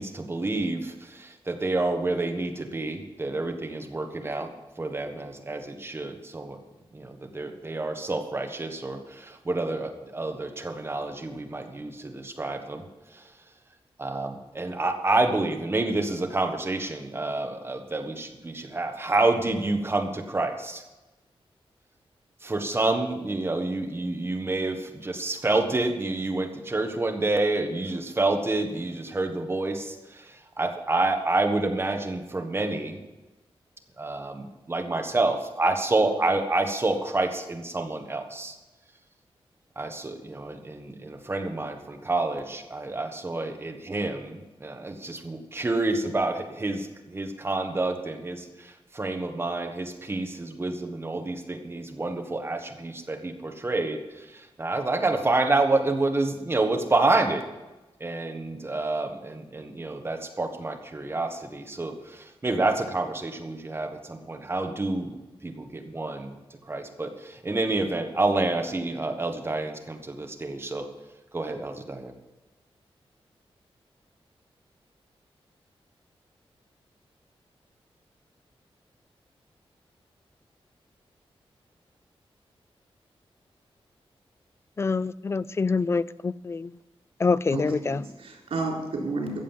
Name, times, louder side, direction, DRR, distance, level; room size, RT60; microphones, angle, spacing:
voice 1, 0.0-6.6 6.9-12.8 13.1-13.3 14.0-20.8 22.4-33.0 34.0-38.6 39.7-57.4 58.0-65.2 65.4-66.4 66.6-70.9 71.3-72.1, right 2 dB, 25° right, 1.4 m, -28 dB
voice 2, 84.8-86.8 87.2-88.0, left 4 dB, 25° left, 0.3 m, -26 dB
voice 3, 87.5-89.4, right 3 dB, 90° right, 4.1 m, -31 dB
14.5 x 7.6 x 7.4 m
wide cardioid pair, 170°, 10 cm